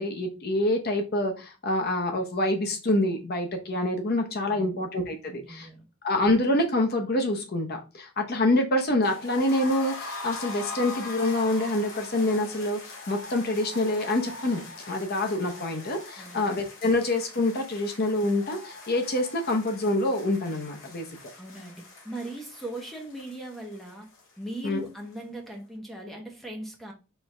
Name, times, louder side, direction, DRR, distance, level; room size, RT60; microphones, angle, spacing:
voice 1, 0.0-5.7 6.0-21.1 24.6-24.8, left 1 dB, 45° left, 0.8 m, -26 dB
voice 2, 4.4-4.8 5.3-5.9 16.2-16.5 21.4-24.1 24.4-26.9, right 1 dB, ahead, 1.0 m, -39 dB
sound 1, 9.0-24.9 25.1-25.2 25.5-25.6, left 3 dB, 65° left, 2.0 m, -42 dB
4.5 x 3.6 x 3.3 m
head